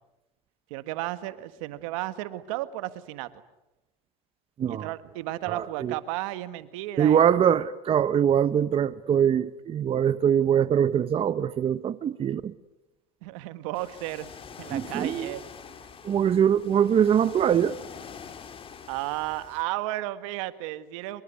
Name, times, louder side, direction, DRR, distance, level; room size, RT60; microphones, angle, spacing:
voice 1, 0.7-3.3 4.7-7.3 13.2-14.3 14.6-15.4 18.9-21.2, right 16 dB, 80° right, 1.7 m, -33 dB
voice 2, 5.5-5.9 7.0-12.5 14.7-15.3 16.0-17.8, right 9 dB, 35° right, 0.9 m, -23 dB
Ocean, 13.7-19.6, left 7 dB, 35° left, 2.6 m, -45 dB
25.5 x 23.0 x 9.6 m
supercardioid pair, 105°, 17 cm